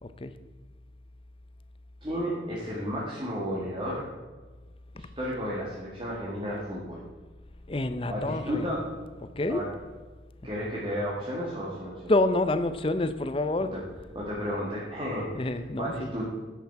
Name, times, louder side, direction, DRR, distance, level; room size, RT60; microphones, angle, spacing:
voice 1, 0.0-0.4 7.7-8.6 9.4-9.6 12.1-13.7 15.4-16.1, left 2 dB, 30° left, 11 dB, 0.5 m, -27 dB
voice 2, 2.0-4.1 4.9-7.0 8.1-8.9 9.5-9.7 10.4-12.1 13.7-13.8 14.1-16.3, equal, 25° right, -6 dB, 1.9 m, -33 dB
10.5 x 8.1 x 4.7 m, 1.3 s
head